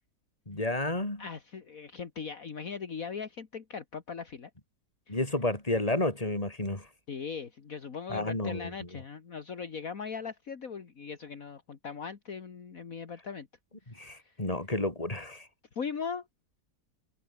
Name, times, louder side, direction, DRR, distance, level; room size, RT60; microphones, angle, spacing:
voice 1, 0.5-1.2 5.1-6.9 8.1-8.9 14.0-15.5, left 2 dB, 20° left, 4.1 m, -31 dB
voice 2, 1.2-4.5 5.1-5.2 7.1-13.5 13.9-14.3 15.8-16.2, left 6 dB, 55° left, 2.1 m, -39 dB
omnidirectional pair, 1.8 m